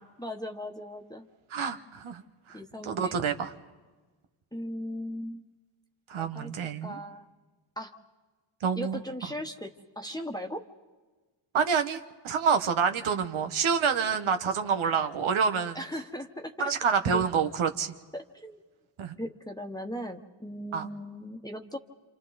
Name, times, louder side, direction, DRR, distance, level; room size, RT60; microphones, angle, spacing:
voice 1, 0.2-1.3 2.5-3.2 4.5-5.4 6.2-6.5 6.8-7.3 7.8-7.9 8.7-10.6 15.7-16.7 17.1-17.3 18.1-18.6 19.2-21.8, equal, 10° left, 2 dB, 1.3 m, -38 dB
voice 2, 1.5-2.2 2.5-2.6 2.9-3.5 6.1-7.0 8.6-9.0 11.5-15.8 16.6-17.9 19.0-19.1 20.7-20.9, right 6 dB, 90° right, 7 dB, 1.3 m, -27 dB
28.0 x 27.5 x 4.1 m, 1.3 s
cardioid pair, 65°, 47 cm